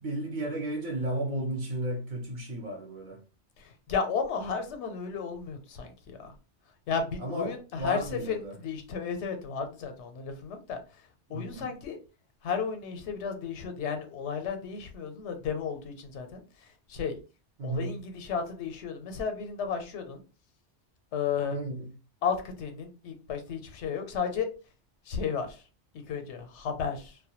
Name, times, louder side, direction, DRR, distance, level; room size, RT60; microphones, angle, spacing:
voice 1, 0.0-3.2 7.2-8.5 11.3-11.7 17.6-18.0 21.5-21.9, right 1 dB, 55° right, 0.6 m, -34 dB
voice 2, 3.6-6.3 6.9-10.8 11.3-12.0 12.4-17.2 17.6-20.2 21.1-21.6 22.2-24.5 25.1-25.6 25.9-27.2, left 6 dB, 85° left, 0.9 m, -33 dB
2.2 x 2.1 x 2.8 m
omnidirectional pair, 1.2 m